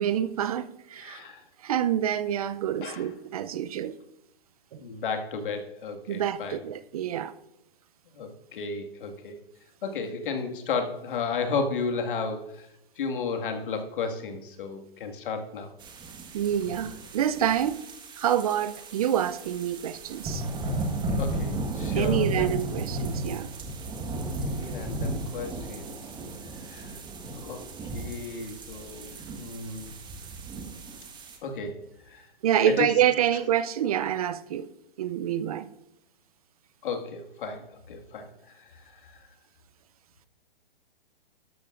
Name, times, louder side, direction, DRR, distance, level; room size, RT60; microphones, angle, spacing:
voice 1, 0.0-1.2 1.6-4.0 4.7-4.8 6.1-7.3 16.3-17.8 18.2-20.5 21.9-23.5 32.4-34.7 35.0-35.7, right 10 dB, 40° right, 0.5 m, -27 dB
voice 2, 1.0-1.4 2.8-3.1 4.8-6.6 8.1-9.4 9.8-12.7 13.0-15.7 21.2-22.6 24.4-25.9 26.5-27.0 27.3-29.9 31.4-31.8 32.1-32.3 32.7-32.9 36.8-39.3, left 5 dB, 60° left, 1.9 m, -34 dB
sound 1, 15.8-31.4, right 2 dB, 15° right, 1.4 m, -34 dB
12.5 x 12.0 x 2.5 m
hypercardioid pair, 140°, 30 cm